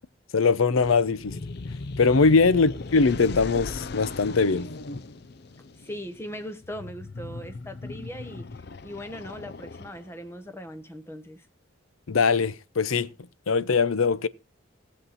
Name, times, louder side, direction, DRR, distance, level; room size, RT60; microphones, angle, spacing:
voice 1, 0.3-1.3 2.0-4.7 12.1-13.1 13.5-14.3, left 4 dB, 85° left, 0.7 m, -21 dB
sound 1, 0.8-10.3, left 3 dB, 50° left, 0.5 m, -38 dB
voice 2, 5.8-11.5, equal, 10° left, 1.1 m, -39 dB
18.5 x 7.4 x 4.1 m
head